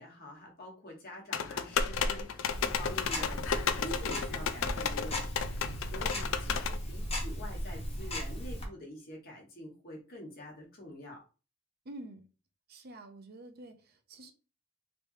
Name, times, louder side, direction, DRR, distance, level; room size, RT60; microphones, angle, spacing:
voice 1, 0.0-11.2, left 1 dB, 50° left, 1.3 m, -46 dB
sound 1, 1.3-6.8, left 6 dB, 85° left, 0.4 m, -33 dB
Tick-tock, 2.5-8.7, equal, 30° left, 0.9 m, -37 dB
voice 2, 11.8-12.2 12.7-14.3, right 1 dB, 55° right, 0.6 m, -48 dB
3.3 x 3.0 x 2.7 m
head